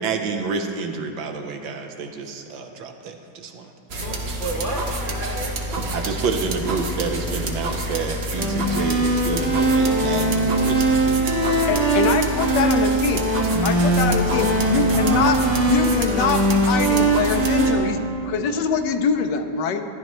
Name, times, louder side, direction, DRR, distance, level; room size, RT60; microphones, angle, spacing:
voice 1, 0.0-3.7 4.1-4.2 5.9-11.5, right 4 dB, 75° right, 5 dB, 1.5 m, -29 dB
sound 1, 3.9-17.7, right 1 dB, 45° right, 0.8 m, -28 dB
voice 2, 4.0-5.5 14.3-15.4, right 1 dB, 45° left, -4 dB, 0.7 m, -31 dB
sound 2, 8.4-17.7, right 2 dB, 10° right, 2.0 m, -21 dB
voice 3, 11.7-13.3 13.6-15.4 15.7-19.9, left 6 dB, 70° left, 7 dB, 1.1 m, -24 dB
14.5 x 11.0 x 3.0 m, 2.7 s
omnidirectional pair, 2.2 m